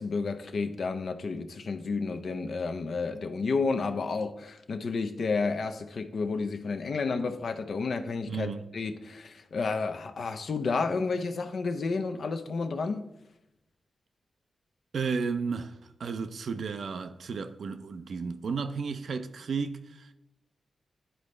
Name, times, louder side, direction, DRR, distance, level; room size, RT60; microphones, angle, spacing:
voice 1, 0.0-13.0, left 4 dB, 70° left, 0.6 m, -31 dB
voice 2, 8.3-8.6 14.9-20.1, right 5 dB, 70° right, 0.5 m, -33 dB
10.0 x 4.1 x 3.2 m
supercardioid pair, 40°, 0 cm